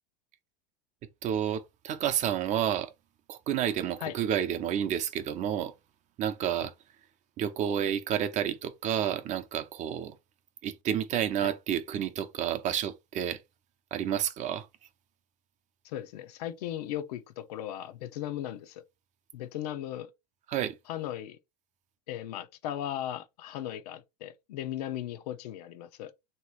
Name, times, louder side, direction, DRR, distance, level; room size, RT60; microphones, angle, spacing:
voice 1, 1.2-2.9 3.3-5.7 6.2-6.7 7.4-10.2 10.6-13.4 13.9-14.7 20.5-20.8, right 10 dB, 35° right, 0.6 m, -30 dB
voice 2, 15.8-18.8 19.3-20.1 20.9-21.4 22.1-26.1, left 11 dB, 75° left, 0.7 m, -37 dB
3.2 x 2.9 x 4.6 m
supercardioid pair, 130°, 20 cm